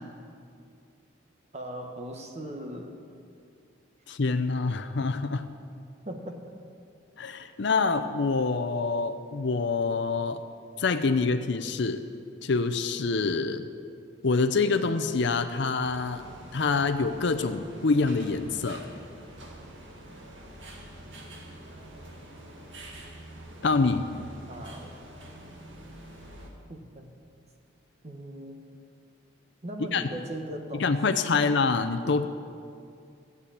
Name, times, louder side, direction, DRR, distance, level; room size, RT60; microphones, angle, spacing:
voice 1, 1.5-3.0 6.0-6.4 24.5-24.9 26.7-27.1 28.0-28.6 29.6-31.0 31.3-31.5, right 1 dB, 35° right, 3 dB, 1.1 m, -39 dB
voice 2, 4.1-5.5 7.2-10.4 10.8-12.0 12.4-13.6 14.2-16.2 16.5-18.8 23.6-24.0 29.9-30.0 30.8-32.3, left 4 dB, 60° left, 9 dB, 0.6 m, -26 dB
sound 1, 15.8-26.5, right 1 dB, 65° right, 2.1 m, -46 dB
14.0 x 8.3 x 8.5 m, 2.4 s
head